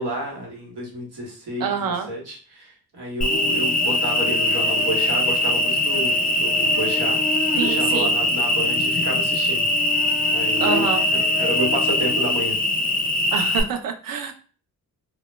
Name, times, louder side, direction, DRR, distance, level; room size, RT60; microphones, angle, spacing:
voice 1, 0.0-7.2 7.6-9.7 10.3-12.6, right 1 dB, 85° right, -2 dB, 1.1 m, -30 dB
voice 2, 1.6-2.1 7.5-8.1 10.6-11.1 13.3-14.3, right 7 dB, 60° right, 5 dB, 0.6 m, -26 dB
Cricket, 3.2-13.6, left 1 dB, 25° left, 0.4 m, -21 dB
2.0 x 2.0 x 3.1 m, 0.39 s
cardioid pair, 50°, 38 cm